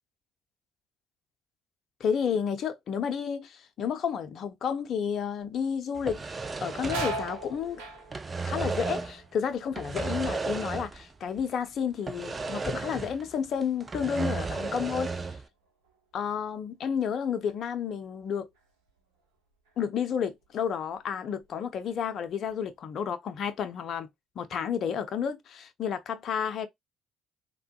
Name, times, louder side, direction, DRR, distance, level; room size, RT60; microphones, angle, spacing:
voice 1, 2.0-6.2 6.6-7.8 8.4-15.1 16.1-18.5 19.8-24.1 24.4-26.7, left 7 dB, 60° left, 0.6 m, -31 dB
sound 1, 5.4-5.8 6.1-11.7 12.0-12.6 13.1-16.0 16.4-16.5 17.5-17.7 18.1-19.2 19.7-19.8 20.4-21.1 21.4-22.5, right 2 dB, 80° right, 0.7 m, -42 dB
sound 2, 6.0-7.7 8.0-9.2 9.7-11.1 11.4-11.5 12.1-13.3 13.6-15.5, right 4 dB, 35° right, 0.5 m, -34 dB
3.5 x 2.2 x 2.2 m
hypercardioid pair, 50°, 0 cm